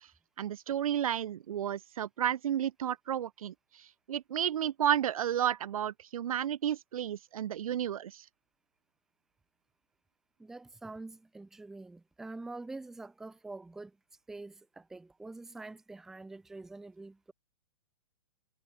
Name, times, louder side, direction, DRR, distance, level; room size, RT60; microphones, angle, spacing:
voice 1, 0.4-3.5 4.1-8.2, right 10 dB, 75° right, 0.6 m, -32 dB
voice 2, 10.4-13.9 14.3-17.3, right 2 dB, ahead, 0.6 m, -45 dB
hypercardioid pair, 165°, 18 cm